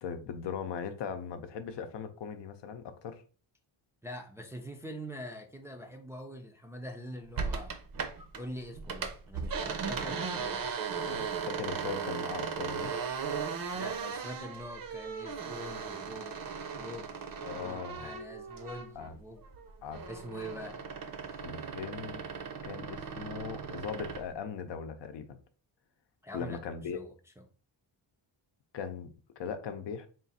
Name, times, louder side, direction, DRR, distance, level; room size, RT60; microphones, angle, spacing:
voice 1, 0.0-3.2 11.0-12.9 17.4-18.1 18.9-19.1 19.8-20.1 21.4-22.2 22.6-25.4 26.3-27.0 28.7-30.1, left 6 dB, 70° left, 0.7 m, -39 dB
voice 2, 4.0-7.8 8.3-10.7 13.7-16.4 16.8-17.1 17.5-19.4 20.1-20.8 21.2-21.7 26.2-26.6 26.9-27.1, equal, 5° right, 0.4 m, -44 dB
sound 1, 7.4-8.4 8.7-19.1 19.4-24.3, right 6 dB, 50° right, 0.6 m, -37 dB
3.7 x 2.5 x 4.1 m
cardioid pair, 120°, 45 cm